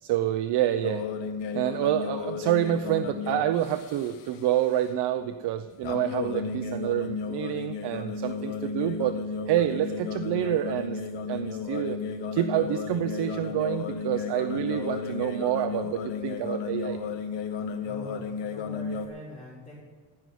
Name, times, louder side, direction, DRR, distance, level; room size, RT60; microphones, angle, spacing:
voice 1, 0.0-1.0 1.5-9.1 9.5-11.0 11.3-12.0 12.3-17.0, right 11 dB, 65° right, 9 dB, 0.7 m, -27 dB
sound 1, 0.8-4.4 5.8-19.1, left 5 dB, 75° left, 1.3 m, -34 dB
voice 2, 17.8-19.7, left 1 dB, 15° left, -11 dB, 4.1 m, -43 dB
16.0 x 6.3 x 9.3 m, 1.4 s
cardioid pair, 175°, 44 cm